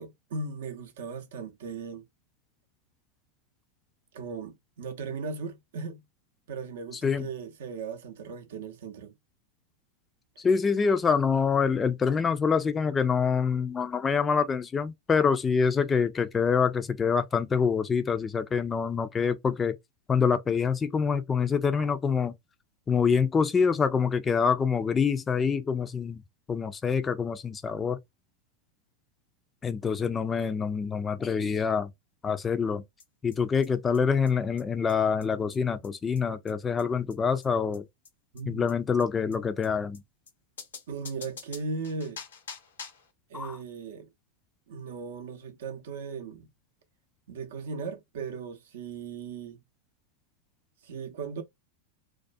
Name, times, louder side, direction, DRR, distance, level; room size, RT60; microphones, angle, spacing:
voice 1, 0.0-2.1 4.1-6.0 6.5-9.1 38.3-38.7 40.9-42.2 43.3-44.1 44.7-46.5 47.3-49.6 50.8-51.4, right 4 dB, 70° right, 0.5 m, -37 dB
voice 2, 10.4-19.7 20.1-22.3 22.9-26.2 26.5-28.0 29.6-31.9 32.2-32.8 33.2-37.9 38.5-40.0 43.3-43.6, left 6 dB, 20° left, 0.3 m, -26 dB
sound 1, 33.0-33.1 33.3-33.4 33.6-33.7 33.9-34.0 34.3-34.4 34.6-34.7 34.9-35.0 35.2-35.3 35.5-35.6 35.8-35.9 36.2-36.3 36.5-36.6 36.8-36.9 37.1-37.2 37.4-37.5 37.7-37.8 38.0-38.1 38.4-38.5 38.7-38.8 39.0-39.1 39.3-39.4 39.6-39.7 39.9-40.0 40.3-40.4 40.6-43.1, left 5 dB, 85° left, 0.7 m, -45 dB
2.3 x 2.1 x 2.5 m
hypercardioid pair, 100°, 0 cm